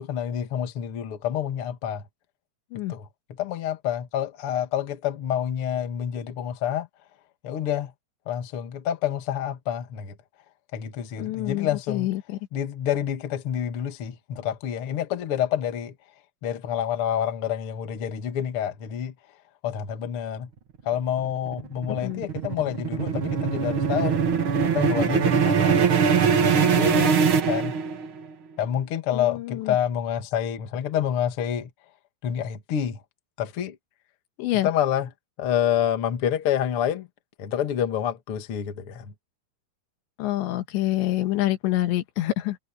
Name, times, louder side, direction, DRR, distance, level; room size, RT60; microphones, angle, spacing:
voice 1, 0.0-2.0 2.9-3.1 3.4-6.9 7.4-7.9 8.3-10.1 10.7-12.1 12.5-15.9 16.4-19.1 19.6-20.5 20.8-24.2 24.6-27.1 27.5-27.8 28.6-31.7 32.2-33.0 33.4-33.8 34.6-35.1 35.4-37.1 37.4-39.1, left 10 dB, 50° left, 1.8 m, -28 dB
voice 2, 11.2-12.4 22.0-22.2 29.1-29.8 34.4-34.7 40.2-42.6, left 15 dB, 85° left, 3.6 m, -27 dB
sound 1, 21.0-28.2, right 6 dB, 65° right, 1.2 m, -22 dB
omnidirectional pair, 5.0 m